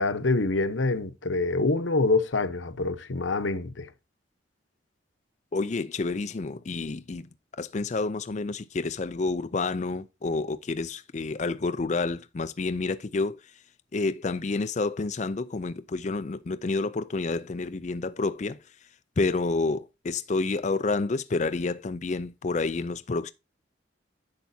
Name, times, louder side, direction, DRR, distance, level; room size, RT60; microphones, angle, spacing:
voice 1, 0.0-3.9, left 3 dB, 90° left, 1.0 m, -26 dB
voice 2, 5.5-7.3 7.6-13.6 13.9-18.9 19.2-23.3, left 3 dB, 40° left, 0.4 m, -29 dB
10.5 x 6.9 x 2.7 m
head